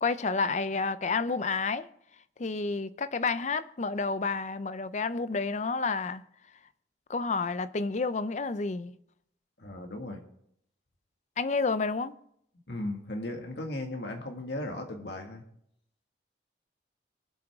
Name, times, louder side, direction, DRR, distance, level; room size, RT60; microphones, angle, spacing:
voice 1, 0.0-1.9 2.4-6.2 7.1-9.0 11.4-12.2, left 4 dB, 40° left, 0.5 m, -30 dB
voice 2, 9.6-10.2 12.7-15.4, left 1 dB, 65° left, 2.0 m, -36 dB
23.5 x 8.0 x 3.6 m
head